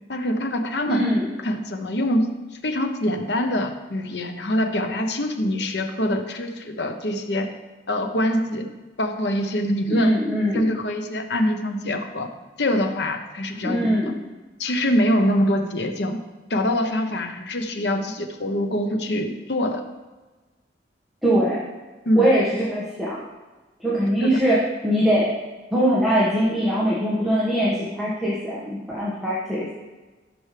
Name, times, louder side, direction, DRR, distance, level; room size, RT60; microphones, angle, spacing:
voice 1, 0.1-1.1 1.4-2.3 2.6-7.5 7.9-8.7 9.0-10.1 10.5-12.3 12.6-14.0 14.6-16.2 16.5-19.8 22.1-22.2 24.2-24.3, left 1 dB, 70° left, 5 dB, 0.9 m, -24 dB
voice 2, 0.9-1.3 9.9-10.7 13.6-14.1 21.2-21.6 22.2-23.2 23.8-25.3 25.7-29.7, equal, ahead, -8 dB, 1.6 m, -22 dB
14.0 x 6.1 x 3.4 m, 1.2 s
head